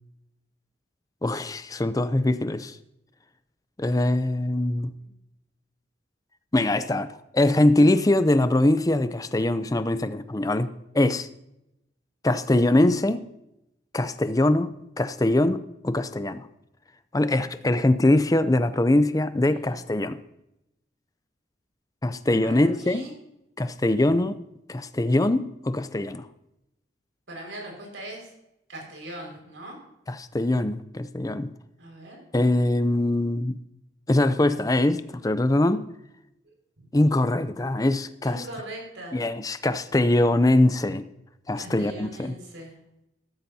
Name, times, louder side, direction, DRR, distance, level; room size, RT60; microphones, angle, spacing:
voice 1, 1.2-2.8 3.8-4.9 6.5-10.7 10.9-11.3 12.2-13.2 13.9-16.5 17.1-20.2 22.0-23.1 23.6-24.4 24.7-26.3 30.1-31.5 32.3-33.6 34.1-35.9 36.9-38.4 39.1-41.1 41.5-42.3, left 1 dB, 20° left, 13 dB, 0.5 m, -22 dB
voice 2, 19.5-19.8 22.4-23.1 27.3-28.3 28.7-29.8 31.8-32.2 36.4-36.8 38.2-39.2 41.5-42.8, right 1 dB, 85° right, 0 dB, 5.3 m, -41 dB
14.5 x 13.5 x 2.8 m, 0.85 s
head